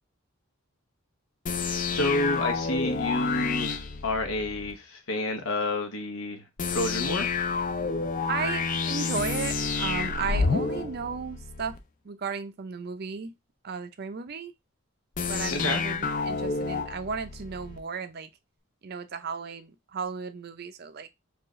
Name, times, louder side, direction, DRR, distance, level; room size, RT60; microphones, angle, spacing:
sound 1, 1.5-4.7 6.6-11.8 15.2-17.8, left 4 dB, 35° left, 0.4 m, -29 dB
voice 1, 1.9-7.3 15.5-15.8, left 2 dB, 80° left, 0.9 m, -29 dB
voice 2, 8.3-11.8 12.0-13.3 13.6-14.5 15.3-18.3 18.8-21.1, right 5 dB, 45° right, 0.4 m, -34 dB
4.5 x 2.4 x 3.0 m
head